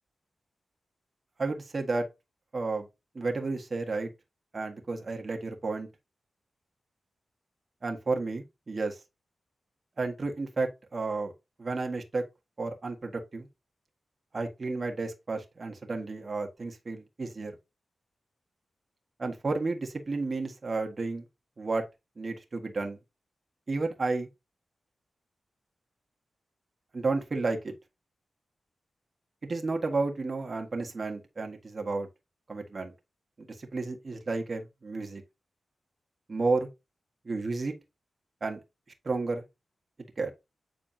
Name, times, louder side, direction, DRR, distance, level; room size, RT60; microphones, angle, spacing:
voice 1, 1.4-2.1 2.5-2.9 3.1-4.1 4.5-5.9 7.8-9.0 10.0-11.3 11.6-12.2 12.6-13.5 14.3-17.5 19.2-21.2 21.6-21.8 22.2-23.0 23.7-24.3 26.9-27.7 29.4-32.1 32.5-32.9 33.4-35.2 36.3-36.7 37.2-37.7 38.4-38.6 39.0-39.4 40.2-40.3, right 3 dB, 50° right, 1.6 m, -32 dB
9.0 x 4.3 x 2.8 m
cardioid pair, 50°, 0 cm